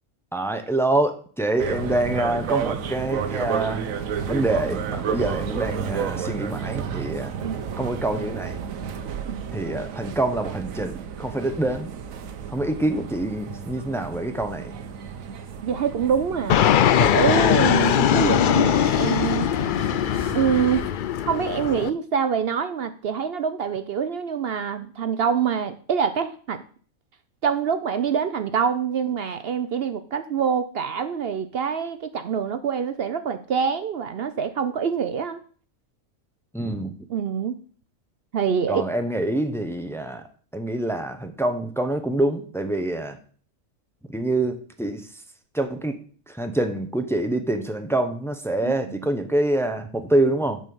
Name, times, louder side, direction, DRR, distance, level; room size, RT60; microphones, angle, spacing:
voice 1, 0.3-3.9 4.3-7.3 7.8-8.6 9.5-11.9 12.5-14.8 36.5-37.0 38.7-40.2 40.5-43.2 44.1-45.1 45.5-45.9 46.3-50.6, right 1 dB, 5° left, 6 dB, 0.6 m, -26 dB
sound 1, 1.6-20.9, right 7 dB, 80° right, 1.2 m, -32 dB
voice 2, 15.6-16.7 17.0-19.7 20.3-20.8 21.3-26.6 27.4-35.4 37.1-37.6 38.3-38.9 48.6-48.9, right 7 dB, 60° right, 10 dB, 0.7 m, -25 dB
Fixed-wing aircraft airplane, 16.5-21.9, left 9 dB, 85° left, 0.4 m, -20 dB
7.3 x 5.2 x 7.0 m, 0.44 s
omnidirectional pair, 1.4 m